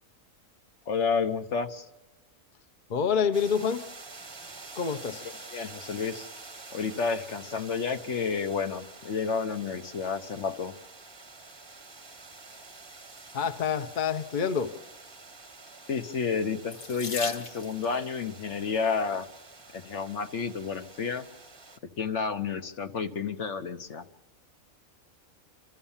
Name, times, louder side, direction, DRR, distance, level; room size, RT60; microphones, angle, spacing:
voice 1, 0.9-1.9 5.5-6.3 6.7-10.8 15.9-19.3 19.7-21.3 22.0-24.1, left 5 dB, 60° left, 8 dB, 1.2 m, -30 dB
voice 2, 2.9-3.8 4.7-5.2 13.3-14.7, left 6 dB, 40° left, 9 dB, 0.9 m, -27 dB
sound 1, 3.3-21.8, right 3 dB, 20° right, 0.9 m, -48 dB
Water tap faucet / Sink (filling or washing), 16.7-17.9 19.0-19.4 20.1-20.2 20.5-20.6, left 4 dB, 75° left, 1.9 m, -38 dB
29.0 x 13.0 x 7.2 m, 1.1 s
omnidirectional pair, 1.5 m